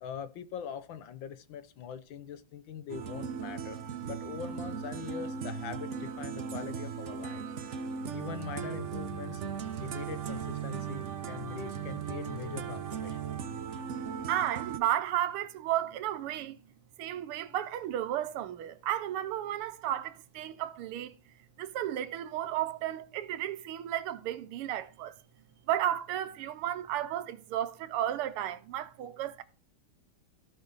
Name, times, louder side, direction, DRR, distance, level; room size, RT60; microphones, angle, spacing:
voice 1, 0.0-3.8 4.0-7.4 8.1-9.4 9.8-13.2 13.7-13.8, left 8 dB, 70° left, 1.3 m, -42 dB
sound 1, 2.9-14.8, right 7 dB, 75° right, 0.6 m, -37 dB
voice 2, 14.3-16.6 17.0-21.1 21.6-25.1 25.7-29.4, right 12 dB, 90° right, 1.7 m, -33 dB
15.5 x 5.4 x 4.0 m
omnidirectional pair, 2.4 m